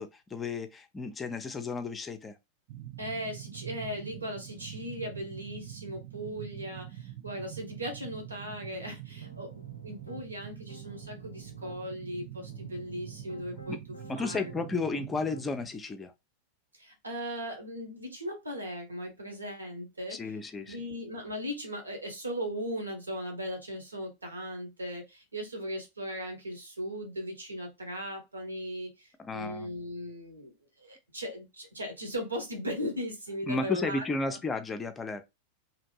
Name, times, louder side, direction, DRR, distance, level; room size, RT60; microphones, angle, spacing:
voice 1, 0.0-2.3 13.7-13.8 14.1-16.1 20.1-20.8 29.2-29.7 33.5-35.2, left 3 dB, 15° left, 0.5 m, -33 dB
sound 1, 2.7-15.7, right 12 dB, 45° right, 0.3 m, -45 dB
voice 2, 3.0-13.8 14.1-14.5 14.8-14.9 16.7-20.2 20.7-34.4, equal, 80° right, 1.0 m, -38 dB
Piano, 9.2-10.3 10.7-11.8 12.4-15.7, left 1 dB, 80° left, 0.5 m, -52 dB
2.9 x 2.5 x 2.7 m
figure-of-eight pair, 90°, 0 cm